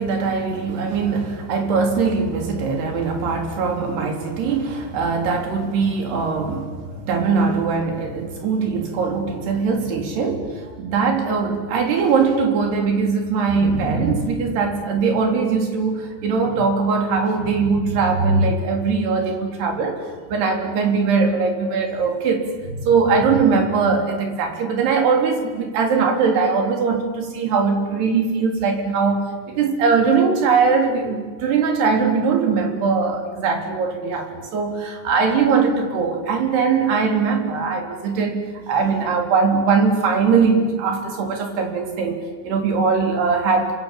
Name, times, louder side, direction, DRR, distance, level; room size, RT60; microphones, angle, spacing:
voice 1, 0.0-38.4 38.7-42.2 42.4-43.7, right 5 dB, 75° right, 3 dB, 5.5 m, -21 dB
29.5 x 26.0 x 7.5 m, 1.5 s
omnidirectional pair, 4.8 m